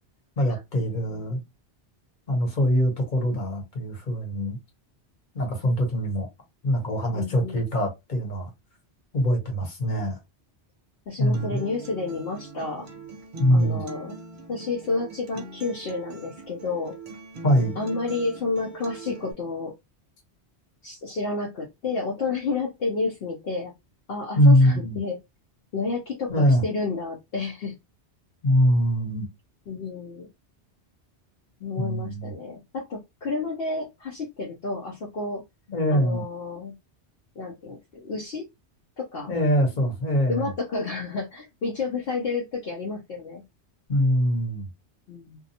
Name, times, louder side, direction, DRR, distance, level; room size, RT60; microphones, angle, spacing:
voice 1, 0.4-1.4 2.3-4.6 5.3-6.3 6.6-8.5 9.1-10.2 11.2-11.6 13.4-13.8 17.4-17.8 24.4-25.0 26.3-26.6 28.4-29.2 31.8-32.3 35.7-36.2 39.3-40.5 43.9-44.7, equal, 45° left, 1.1 m, -23 dB
voice 2, 7.1-7.7 11.1-12.9 13.5-14.2 14.5-16.9 17.8-19.7 20.8-23.7 24.1-25.2 25.7-27.8 29.7-30.3 31.6-35.4 35.9-36.7 37.4-38.4 39.0-39.3 40.3-43.4 45.1-45.4, left 3 dB, 65° left, 0.9 m, -30 dB
Acoustic guitar, 11.3-19.3, right 3 dB, 50° right, 0.7 m, -41 dB
2.5 x 2.2 x 2.7 m
omnidirectional pair, 1.2 m